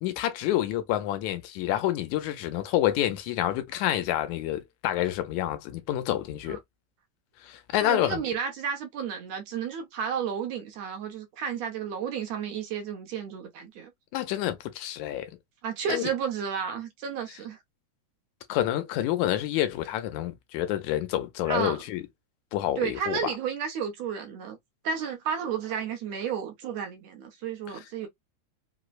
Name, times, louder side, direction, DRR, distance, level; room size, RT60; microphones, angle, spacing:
voice 1, 0.0-6.6 7.4-8.2 14.1-15.3 15.9-16.0 18.5-22.0 22.5-23.3, left 13 dB, 85° left, 2.0 m, -28 dB
voice 2, 7.8-13.9 15.6-17.6 21.5-21.8 22.8-24.6 24.8-28.1, right 7 dB, 75° right, 1.8 m, -32 dB
5.0 x 2.0 x 2.2 m
omnidirectional pair, 3.3 m